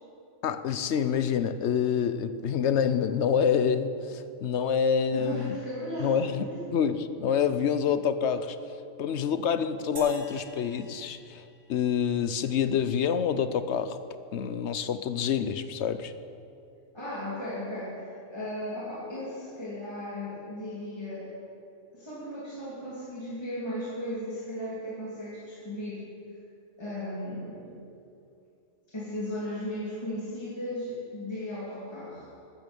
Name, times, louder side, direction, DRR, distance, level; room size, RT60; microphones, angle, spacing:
voice 1, 0.4-5.6 6.0-6.5 6.7-8.6 9.0-14.0 14.3-16.1, left 7 dB, 65° left, 12 dB, 0.9 m, -27 dB
voice 2, 5.1-6.6 16.9-21.3 21.9-26.1 26.8-27.8 28.9-32.3, left 1 dB, 20° left, -9 dB, 2.9 m, -36 dB
sound 1, 10.0-12.4, right 2 dB, 90° right, 1.9 m, -47 dB
14.5 x 13.0 x 5.2 m, 2.5 s
omnidirectional pair, 1.3 m